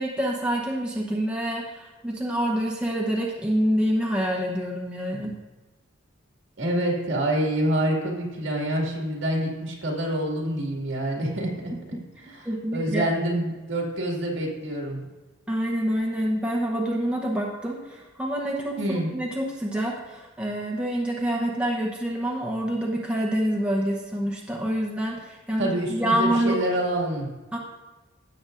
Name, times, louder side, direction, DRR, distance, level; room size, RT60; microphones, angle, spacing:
voice 1, 0.0-5.4 11.9-13.1 15.5-26.6 27.5-27.6, right 1 dB, 5° right, -3 dB, 0.9 m, -27 dB
voice 2, 6.6-11.5 12.3-15.1 18.8-19.1 25.6-27.3, right 1 dB, 60° right, -1 dB, 2.2 m, -27 dB
16.5 x 6.9 x 2.6 m, 1.2 s
head